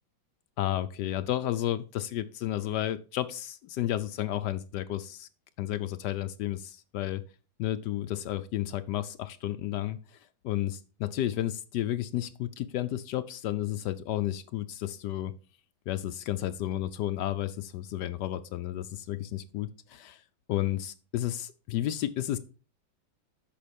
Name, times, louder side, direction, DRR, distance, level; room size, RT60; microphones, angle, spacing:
voice 1, 0.6-5.3 5.6-7.2 7.6-10.0 10.4-15.3 15.9-20.2 20.5-22.4, left 13 dB, 75° left, 11 dB, 1.0 m, -32 dB
8.6 x 6.0 x 5.1 m, 0.36 s
omnidirectional pair, 2.3 m